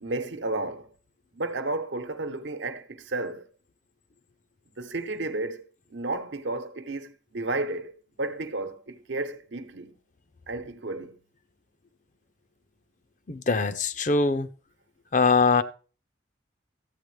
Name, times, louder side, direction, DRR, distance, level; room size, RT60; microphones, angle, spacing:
voice 1, 0.0-0.9 1.3-3.5 4.8-7.9 8.2-9.9 10.5-11.2, right 2 dB, 85° right, 0.9 m, -32 dB
voice 2, 13.3-14.5 15.1-15.6, left 4 dB, 45° left, 0.5 m, -22 dB
13.5 x 8.5 x 3.3 m
head